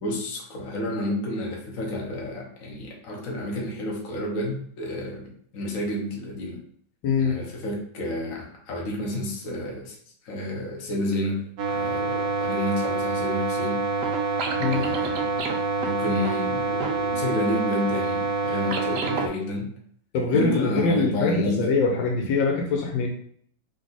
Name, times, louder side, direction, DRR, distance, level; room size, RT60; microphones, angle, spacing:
voice 1, 0.0-6.6 7.2-10.0 10.2-11.4 11.7-13.8 14.7-15.4 15.8-19.7 20.3-21.6, left 1 dB, 55° left, -2 dB, 1.2 m, -30 dB
voice 2, 7.0-7.4 14.6-14.9 20.1-23.1, left 4 dB, 85° left, 1 dB, 1.5 m, -23 dB
sound 1, 11.6-19.3, right 3 dB, 80° right, 0.7 m, -26 dB
4.0 x 2.9 x 4.0 m, 0.63 s
omnidirectional pair, 2.0 m